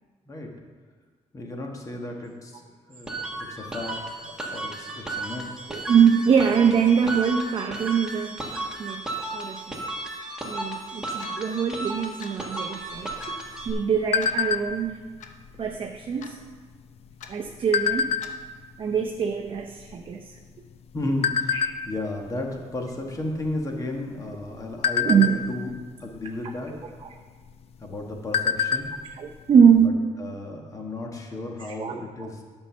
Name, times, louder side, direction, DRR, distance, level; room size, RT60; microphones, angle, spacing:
voice 1, 1.3-4.0 4.2-5.4 20.9-25.7 26.0-26.7 27.8-28.9 29.8-29.9 30.2-32.4, left 2 dB, 25° left, 2 dB, 1.4 m, -34 dB
sound 1, 3.1-13.7, right 2 dB, 5° right, 1.5 m, -34 dB
voice 2, 5.7-8.4 8.8-9.0 9.3-9.8 10.4-13.1 13.7-15.0 15.6-16.4 17.3-18.2 18.8-20.3 21.5-21.6 25.0-25.4 26.7-27.1 29.1-30.0 31.6-32.0, right 7 dB, 45° right, 2 dB, 0.6 m, -23 dB
Clock, 11.2-11.4 12.2-12.4 13.2-13.4 14.2-14.4 15.2-15.3 16.2-16.4 17.2-17.3 18.2-18.4, left 7 dB, 80° left, 0.8 m, -43 dB
sound 2, 12.9-14.9 15.4-15.7 16.0-16.3 17.0-18.6 19.2-19.3 19.5-20.7 21.2-21.7 22.3-22.5 22.8-23.0 23.5-24.0 24.4-25.8 26.9-27.0 27.5-27.6 27.9-29.0 29.3-29.4 29.7-29.9, left 7 dB, 55° left, 0.5 m, -25 dB
10.0 x 5.5 x 7.0 m, 1.5 s
cardioid pair, 145°, 12 cm